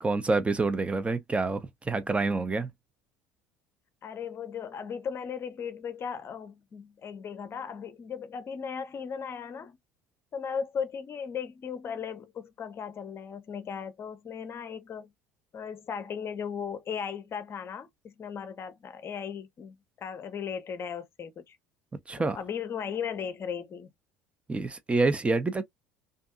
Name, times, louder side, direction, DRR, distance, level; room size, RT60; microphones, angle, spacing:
voice 1, 0.0-2.7 22.1-22.4 24.5-25.6, right 3 dB, 15° right, 0.5 m, -27 dB
voice 2, 4.0-9.8 10.3-15.1 15.5-21.6 22.2-23.9, left 7 dB, 35° left, 0.6 m, -37 dB
2.6 x 2.4 x 2.4 m
hypercardioid pair, 65°, 7 cm